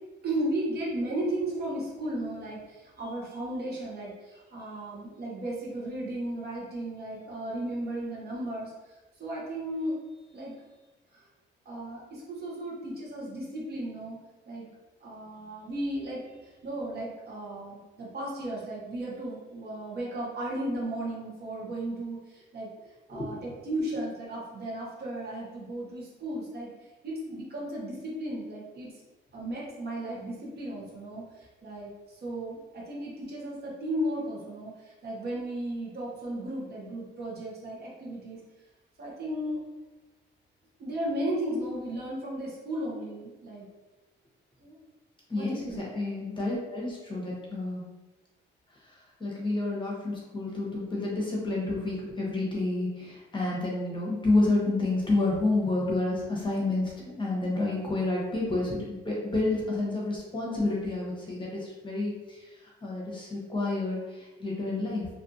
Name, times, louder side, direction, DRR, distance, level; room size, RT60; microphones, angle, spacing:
voice 1, 0.2-10.0 10.3-10.5 11.1-11.3 11.6-14.2 14.5-14.7 15.0-22.7 23.1-26.7 27.0-28.9 29.3-38.4 39.0-39.6 40.8-43.7 44.6-44.8 45.3-45.8, right 1 dB, 55° right, -5 dB, 1.0 m, -35 dB
voice 2, 45.3-47.8 49.2-62.6 62.8-65.1, left 2 dB, 25° left, -4 dB, 0.9 m, -29 dB
2.7 x 2.4 x 2.6 m, 1.2 s
cardioid pair, 90°, 20 cm